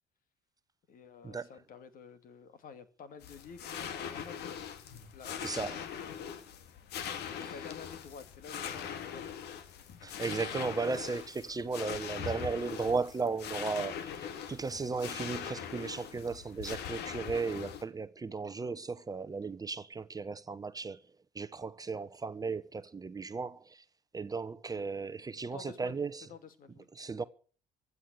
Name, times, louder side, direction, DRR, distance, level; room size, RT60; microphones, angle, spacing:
voice 1, 0.9-4.6 5.1-5.9 7.4-9.5 25.2-26.9, left 5 dB, 55° left, 2.3 m, -51 dB
sound 1, 3.2-17.8, left 8 dB, 80° left, 2.1 m, -41 dB
voice 2, 5.4-5.8 7.4-7.5 10.0-21.0 21.3-23.8 24.1-26.3 27.0-27.2, right 4 dB, 20° right, 0.9 m, -36 dB
15.5 x 9.6 x 7.6 m
cardioid pair, 110°, 17 cm